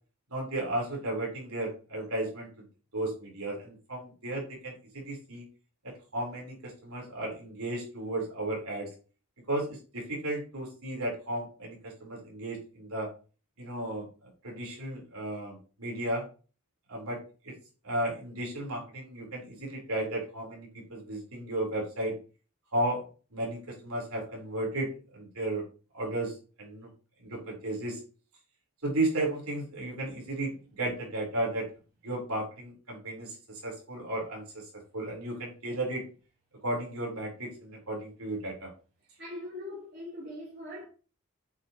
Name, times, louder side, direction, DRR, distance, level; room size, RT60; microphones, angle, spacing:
voice 1, 0.3-2.6 2.9-5.5 5.8-8.9 9.5-13.1 13.6-16.3 16.9-17.5 17.8-22.1 22.7-23.0 23.3-25.6 25.9-26.9 27.2-28.0 28.8-31.7 32.0-36.0 36.6-38.7, right 1 dB, 90° right, 3.9 m, -34 dB
voice 2, 39.2-40.8, left 1 dB, 45° right, 3.8 m, -41 dB
8.2 x 6.4 x 3.0 m
head